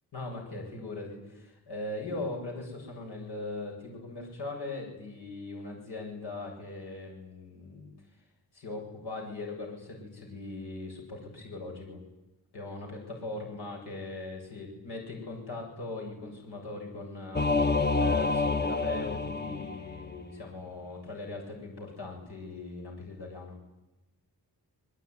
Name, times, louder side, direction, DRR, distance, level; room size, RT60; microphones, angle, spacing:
voice 1, 0.1-7.9 8.5-12.0 12.5-23.6, left 2 dB, 80° left, 0 dB, 7.6 m, -40 dB
Singing / Musical instrument, 17.3-20.2, left 3 dB, 25° left, 1.1 m, -28 dB
27.0 x 22.0 x 9.8 m, 0.98 s
wide cardioid pair, 115°, 39 cm